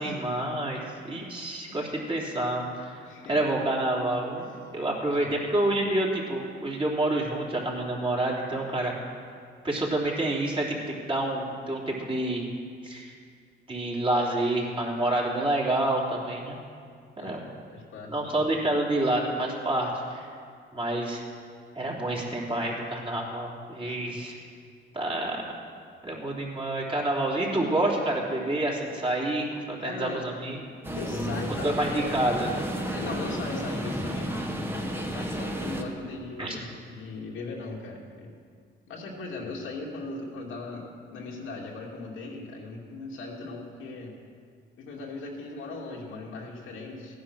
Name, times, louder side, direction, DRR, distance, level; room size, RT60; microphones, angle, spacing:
voice 1, 0.0-2.9 3.3-4.5 4.7-8.9 9.6-12.4 12.8-13.1 13.7-16.6 17.2-17.4 18.1-20.3 20.7-21.2 21.7-24.4 24.9-25.4 26.0-30.6 31.6-32.5 36.4-36.6, right 1 dB, 25° right, -3 dB, 3.3 m, -28 dB
voice 2, 3.0-3.4 4.4-4.5 5.1-5.4 17.2-18.4 23.8-24.2 29.8-30.2 31.0-32.6 32.9-34.4 35.1-36.6 36.9-38.3 38.9-40.8 41.1-44.1 44.8-47.2, left 3 dB, 85° left, -2 dB, 2.6 m, -38 dB
sound 1, 30.8-35.8, equal, 10° right, 1.6 m, -32 dB
15.0 x 10.5 x 6.4 m, 2.1 s
cardioid pair, 90°, 20 cm